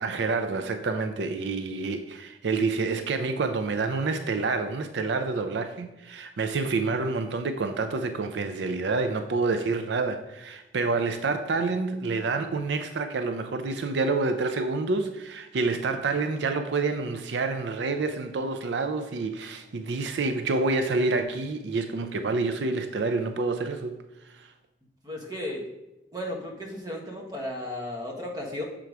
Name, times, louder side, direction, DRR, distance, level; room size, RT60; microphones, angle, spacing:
voice 1, 0.0-24.0 24.4-24.5, right 3 dB, 75° right, 0.4 m, -28 dB
voice 2, 25.0-25.7 26.1-28.6, left 1 dB, 20° right, 1.2 m, -34 dB
6.7 x 3.8 x 4.6 m
head